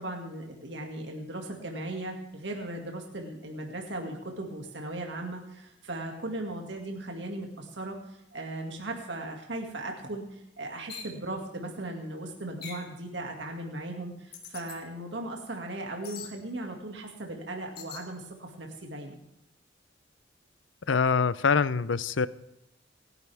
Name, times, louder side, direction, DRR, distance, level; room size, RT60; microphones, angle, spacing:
voice 1, 0.0-19.2, right 1 dB, 70° right, 2 dB, 2.1 m, -37 dB
sound 1, 10.9-11.2 12.6-12.9 14.3-14.8 16.0-16.3 17.8-18.1, left 6 dB, 55° left, 3.1 m, -42 dB
voice 2, 20.9-22.3, left 5 dB, 90° left, 17 dB, 0.6 m, -24 dB
28.0 x 11.0 x 3.5 m, 0.88 s
head